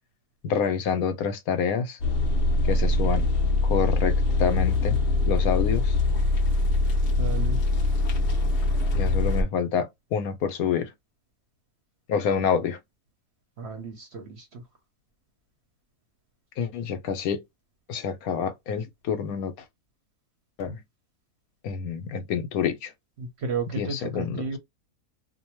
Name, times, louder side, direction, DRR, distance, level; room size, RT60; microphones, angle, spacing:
voice 1, 0.4-2.0 2.7-3.3 3.6-5.0 5.3-5.9 8.9-10.9 12.1-12.8 16.6-17.4 17.9-19.5 20.6-20.8 21.6-22.9 23.8-24.5, left 6 dB, 75° left, 1.0 m, -27 dB
sound 1, 2.0-9.4, left 2 dB, 55° left, 0.7 m, -23 dB
voice 2, 7.2-7.6 13.6-14.6 23.2-24.6, right 4 dB, 55° right, 0.8 m, -33 dB
2.6 x 2.1 x 2.9 m
omnidirectional pair, 1.6 m